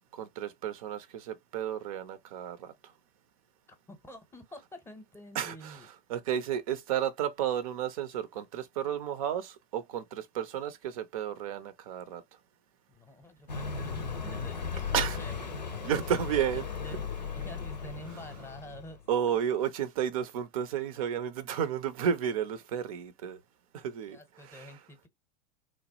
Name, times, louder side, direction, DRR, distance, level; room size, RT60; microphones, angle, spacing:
voice 1, 0.1-2.9 5.3-5.8 6.1-12.2 14.9-15.2 15.8-16.6 19.1-23.4 23.7-24.2 24.4-24.7, right 9 dB, 55° right, 0.5 m, -32 dB
voice 2, 3.7-5.9 12.9-15.7 16.4-19.0 24.1-25.1, equal, 10° left, 0.8 m, -48 dB
Car passing by, 13.5-19.0, left 6 dB, 85° left, 0.6 m, -36 dB
3.1 x 2.3 x 2.7 m
figure-of-eight pair, 80°, 21 cm